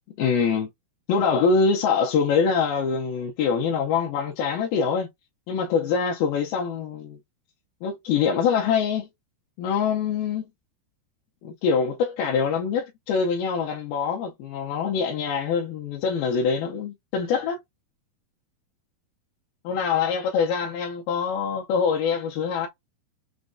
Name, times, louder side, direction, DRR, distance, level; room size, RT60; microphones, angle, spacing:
voice 1, 0.2-0.7 1.1-5.1 5.5-7.2 7.8-9.1 9.6-10.5 11.4-17.6 19.6-22.7, left 6 dB, 80° left, 2.4 m, -24 dB
6.1 x 2.1 x 2.5 m
omnidirectional pair, 4.4 m